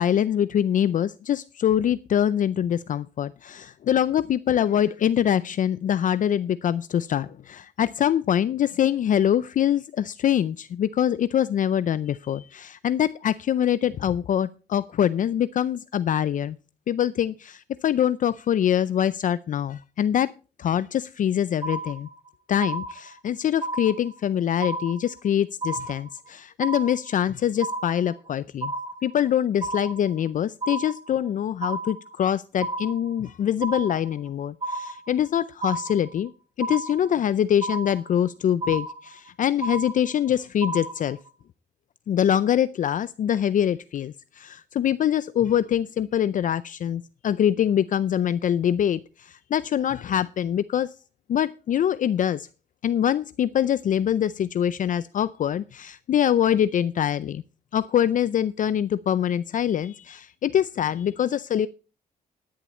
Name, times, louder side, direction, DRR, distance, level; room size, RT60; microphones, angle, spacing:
voice 1, 0.0-16.6 16.9-20.3 20.6-22.1 22.5-28.7 29.0-36.3 36.6-41.2 42.1-50.9 51.3-52.5 52.8-57.4 57.7-61.7, left 10 dB, 55° left, 16 dB, 0.5 m, -24 dB
sound 1, 21.6-22.3 22.6-23.3 23.6-24.3 24.6-25.3 25.6-26.3 26.6-27.3 27.6-28.3 28.6-29.3 29.6-30.3 30.6-31.3 31.6-32.3 32.6-33.3 33.6-34.3 34.6-35.3 35.6-36.3 36.6-37.3 37.6-38.3 38.6-39.3 39.6-40.3 40.6-41.3, right 2 dB, 30° right, 2.5 m, -32 dB
11.0 x 10.0 x 4.3 m, 0.35 s
cardioid pair, 95°, 16 cm